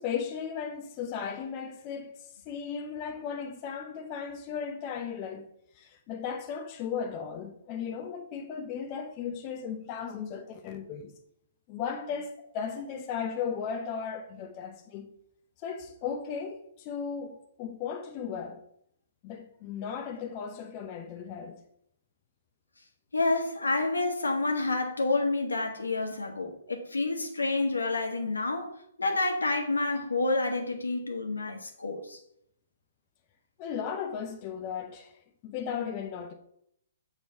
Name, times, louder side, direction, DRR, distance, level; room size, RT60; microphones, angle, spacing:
voice 1, 0.0-5.4 5.7-11.1 11.7-15.1 15.6-18.6 19.2-21.6 33.6-36.3, left 7 dB, 30° left, 0.6 m, -36 dB
voice 2, 23.1-28.7 29.0-32.2, left 2 dB, 80° left, 1.2 m, -29 dB
6.8 x 3.2 x 5.2 m
figure-of-eight pair, 125°, 0 cm